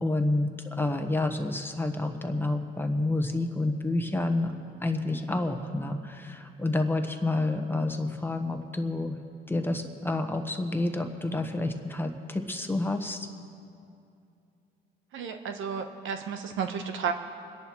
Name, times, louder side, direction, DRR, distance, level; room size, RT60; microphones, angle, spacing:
voice 1, 0.0-4.5 4.8-9.2 9.5-13.3, left 2 dB, 10° left, 5 dB, 1.2 m, -29 dB
voice 2, 15.1-17.1, right 7 dB, 80° right, 6 dB, 1.1 m, -32 dB
27.5 x 11.0 x 3.1 m, 2.5 s
cardioid pair, 90°, 20 cm